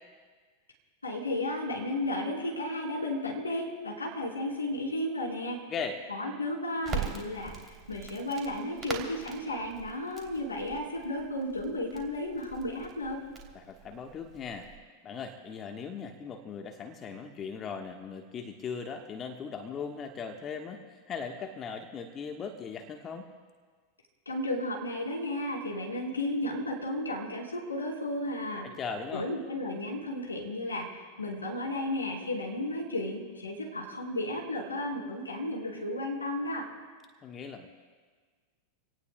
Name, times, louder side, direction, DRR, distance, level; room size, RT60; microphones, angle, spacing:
voice 1, 1.0-5.6 6.1-13.2 24.3-28.7 29.1-36.7, left 1 dB, 80° left, -1 dB, 4.0 m, -33 dB
voice 2, 5.7-6.0 13.5-14.7 15.0-23.3 28.6-29.3 37.2-37.7, left 5 dB, 25° left, 5 dB, 1.2 m, -39 dB
Crackle, 6.8-14.8, right 5 dB, 20° right, 3.0 m, -42 dB
28.0 x 18.0 x 2.2 m, 1.5 s
figure-of-eight pair, 90°, 0 cm